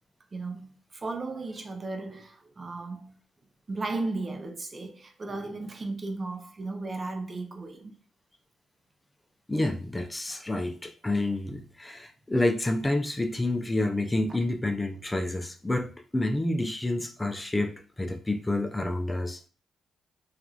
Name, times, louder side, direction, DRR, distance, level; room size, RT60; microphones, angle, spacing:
voice 1, 0.3-3.2 3.7-7.9 10.3-10.4, right 3 dB, 35° right, 0.5 m, -35 dB
voice 2, 9.5-19.5, left 2 dB, 15° left, 0.4 m, -29 dB
2.9 x 2.4 x 2.3 m
cardioid pair, 85°, 0 cm